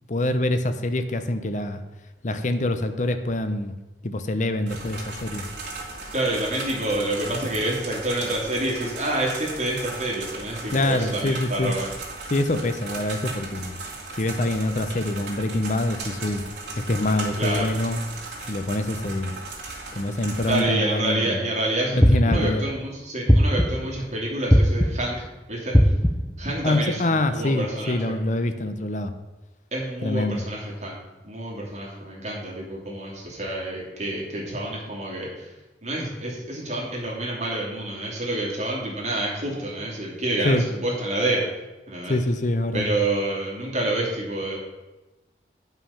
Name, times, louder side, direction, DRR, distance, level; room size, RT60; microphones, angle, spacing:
voice 1, 0.1-1.8 2.2-3.7 4.0-5.5 10.7-11.7 12.3-13.8 14.2-16.4 16.9-18.0 18.5-19.3 19.9-21.5 21.9-22.6 26.6-29.1 30.0-30.4 40.4-40.7 42.1-42.9, left 1 dB, 45° left, 9 dB, 0.7 m, -25 dB
sound 1, 4.7-20.6, right 3 dB, 90° right, 2.3 m, -37 dB
voice 2, 6.1-11.9 17.4-17.7 20.5-25.2 25.5-25.7 26.4-28.0 29.7-31.0 31.2-35.5 35.8-41.4 41.9-42.1 42.7-44.6, right 1 dB, 40° right, -4 dB, 2.7 m, -28 dB
sound 2, 22.0-22.7 23.3-23.9 24.5-25.1 25.7-26.4, equal, 5° left, 0.6 m, -18 dB
9.3 x 5.8 x 5.6 m, 1.1 s
head